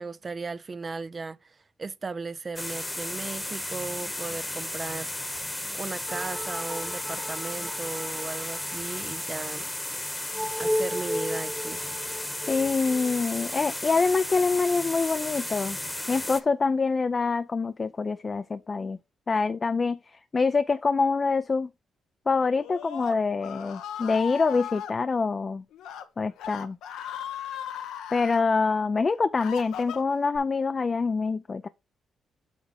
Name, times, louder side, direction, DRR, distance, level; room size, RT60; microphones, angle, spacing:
voice 1, 0.0-5.3 5.8-9.7 10.6-11.9, right 4 dB, 35° right, 0.5 m, -36 dB
sound 1, 2.6-16.4, left 1 dB, 10° left, 1.1 m, -34 dB
sound 2, 6.1-14.9, equal, 5° right, 0.7 m, -36 dB
voice 2, 12.5-15.8 16.1-19.0 19.3-20.0 20.3-21.7 22.3-25.6 26.2-26.8 28.1-31.7, left 4 dB, 40° left, 0.5 m, -25 dB
Screaming, 22.5-24.9 25.7-26.0 26.4-28.4 29.0-30.4, left 9 dB, 85° left, 1.0 m, -37 dB
8.3 x 3.5 x 5.0 m
cardioid pair, 70°, 0 cm